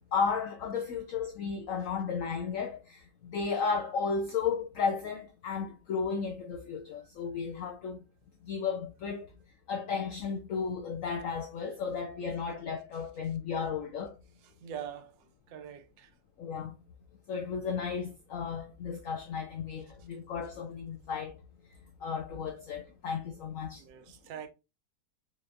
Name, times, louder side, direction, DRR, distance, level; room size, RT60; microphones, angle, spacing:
voice 1, 0.1-8.0 8.4-9.3 9.7-14.1 16.4-16.8 17.3-21.4 22.0-23.8, left 5 dB, 80° left, 0.7 m, -34 dB
voice 2, 14.6-16.1 23.8-24.5, right 9 dB, 85° right, 1.3 m, -43 dB
4.3 x 3.2 x 2.4 m
omnidirectional pair, 2.0 m